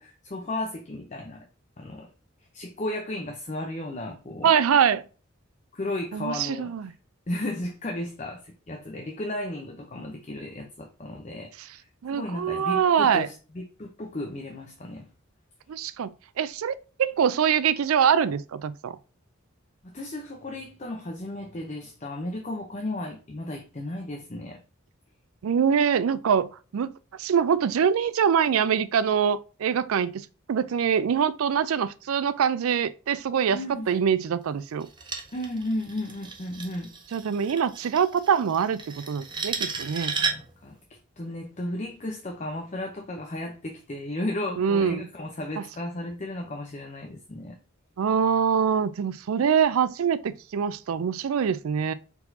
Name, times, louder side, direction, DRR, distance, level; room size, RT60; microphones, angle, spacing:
voice 1, 0.0-1.5 1.8-2.1 2.5-4.5 5.7-6.7 7.3-15.1 19.8-24.6 33.5-33.9 35.3-36.9 40.2-47.6, left 1 dB, 35° left, 0.6 m, -34 dB
voice 2, 4.4-5.0 6.1-6.9 12.0-13.3 15.7-16.1 16.4-19.0 25.4-26.9 27.2-30.2 30.5-33.6 33.9-34.9 37.1-40.1 44.6-45.1 45.6-45.7 48.0-51.9, right 7 dB, 90° right, 0.4 m, -24 dB
sound 1, 34.8-40.6, right 5 dB, 20° right, 0.6 m, -34 dB
4.5 x 4.1 x 2.7 m
head